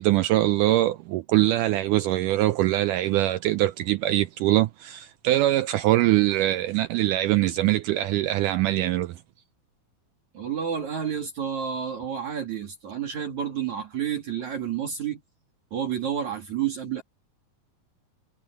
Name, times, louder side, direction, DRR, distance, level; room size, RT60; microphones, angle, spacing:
voice 1, 0.0-9.2, right 15 dB, 85° right, 1.8 m, -23 dB
voice 2, 10.3-15.2 15.7-17.0, right 8 dB, 55° right, 3.8 m, -30 dB
omnidirectional pair, 4.2 m